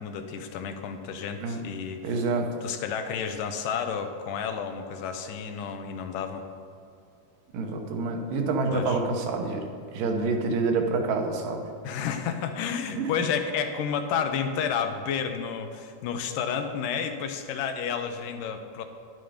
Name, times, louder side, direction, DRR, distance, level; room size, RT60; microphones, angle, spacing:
voice 1, 0.0-2.1 2.6-6.4 8.7-9.0 11.8-18.8, left 7 dB, 80° left, 6 dB, 2.4 m, -31 dB
voice 2, 2.0-2.5 7.5-9.6 9.9-11.6 13.0-13.1, right 3 dB, 90° right, 3 dB, 2.8 m, -27 dB
11.5 x 9.4 x 5.1 m, 2.5 s
omnidirectional pair, 3.8 m